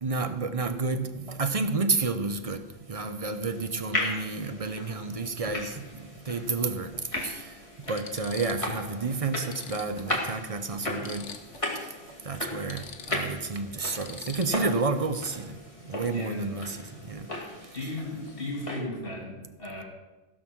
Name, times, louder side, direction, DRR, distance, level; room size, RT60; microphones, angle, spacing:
voice 1, 0.0-2.6 2.9-7.5 7.9-11.3 11.7-11.9 12.2-15.6 15.9-17.3, right 3 dB, 35° right, 9 dB, 0.8 m, -30 dB
sound 1, 2.8-18.8, left 2 dB, 30° left, 2.1 m, -37 dB
sound 2, 5.1-5.2 6.6-6.7 7.3-7.4 7.8-8.8 9.1-9.2 9.4-11.7 12.0-12.2 12.5-14.9 17.5-17.7 18.0-18.4, left 5 dB, 85° left, 1.3 m, -45 dB
voice 2, 16.1-16.4 17.7-19.8, left 1 dB, 55° left, -1 dB, 3.2 m, -36 dB
16.0 x 6.4 x 6.2 m, 1.1 s
omnidirectional pair, 1.2 m